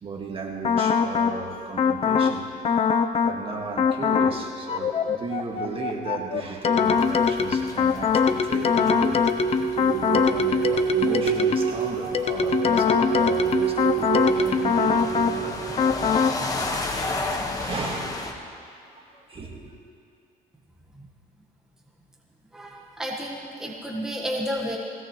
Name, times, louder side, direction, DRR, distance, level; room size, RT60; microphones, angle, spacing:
voice 1, 0.0-2.5 3.2-9.2 9.8-16.7 17.0-18.2 18.9-19.7, right 3 dB, 35° right, 1 dB, 1.9 m, -35 dB
sound 1, 0.6-1.4 1.8-2.4 2.6-3.4 3.8-4.4 4.7-11.7 12.1-15.4 15.8-16.4, left 6 dB, 35° left, 0.7 m, -22 dB
sound 2, 6.8-18.3, left 2 dB, 20° left, 1.5 m, -35 dB
sound 3, 8.5-16.3, right 12 dB, 60° right, 1.0 m, -28 dB
voice 2, 22.5-24.8, equal, 5° right, -2 dB, 1.5 m, -31 dB
20.0 x 17.5 x 3.2 m, 2.6 s
cardioid pair, 110°, 17 cm